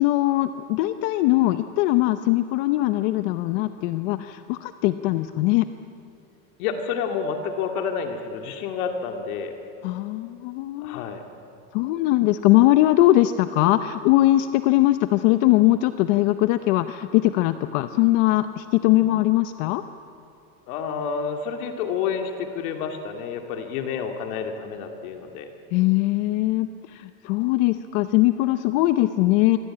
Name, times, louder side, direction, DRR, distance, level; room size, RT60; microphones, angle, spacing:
voice 1, 0.0-5.7 9.8-11.2 11.7-19.8 25.7-29.6, left 16 dB, 55° left, 11 dB, 0.8 m, -21 dB
voice 2, 6.6-9.6 10.8-11.2 20.7-25.5, left 6 dB, 70° left, 4 dB, 2.4 m, -29 dB
26.0 x 23.0 x 8.8 m, 2.7 s
supercardioid pair, 165°, 44 cm